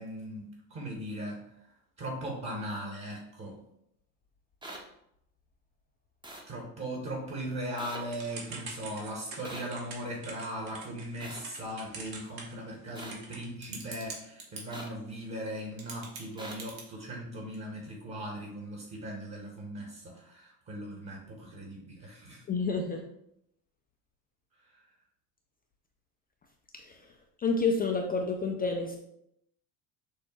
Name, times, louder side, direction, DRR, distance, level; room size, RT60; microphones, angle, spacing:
voice 1, 0.0-1.4 2.0-3.5 6.5-22.4, right 1 dB, 35° right, -1 dB, 1.3 m, -39 dB
sound 1, 4.6-4.8 6.2-6.4 7.8-8.0 9.4-9.7 11.2-11.4 13.0-13.1 14.7-14.9 16.4-16.5, right 1 dB, 10° right, 0.7 m, -42 dB
Typing / Telephone, 8.1-14.6 15.5-15.6 15.8-16.8, right 4 dB, 55° right, 1.4 m, -44 dB
voice 2, 22.5-23.0 26.7-27.1 27.4-29.0, left 4 dB, 20° left, 2 dB, 0.3 m, -29 dB
6.3 x 2.1 x 3.1 m, 0.77 s
hypercardioid pair, 80°, 46 cm